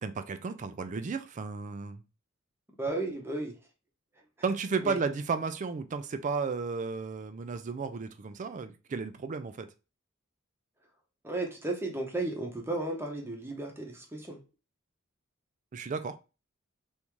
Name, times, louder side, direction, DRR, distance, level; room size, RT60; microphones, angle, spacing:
voice 1, 0.0-2.0 4.4-9.7 15.7-16.3, right 4 dB, 35° right, 0.4 m, -33 dB
voice 2, 2.8-3.6 4.8-5.0 11.2-14.4, right 2 dB, 10° right, 0.8 m, -34 dB
3.5 x 2.7 x 3.0 m
head